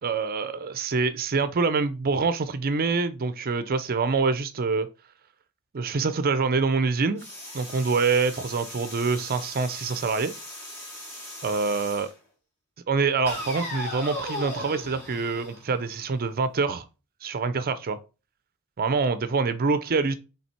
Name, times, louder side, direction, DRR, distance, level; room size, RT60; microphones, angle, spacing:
voice 1, 0.0-4.9 5.7-7.3 7.5-10.3 11.4-12.1 12.9-16.9 17.2-18.0 18.8-20.2, right 4 dB, 40° right, 0.5 m, -25 dB
sound 1, 7.2-12.1 13.3-16.2, left 1 dB, 10° left, 3.0 m, -38 dB
7.3 x 3.3 x 4.3 m
head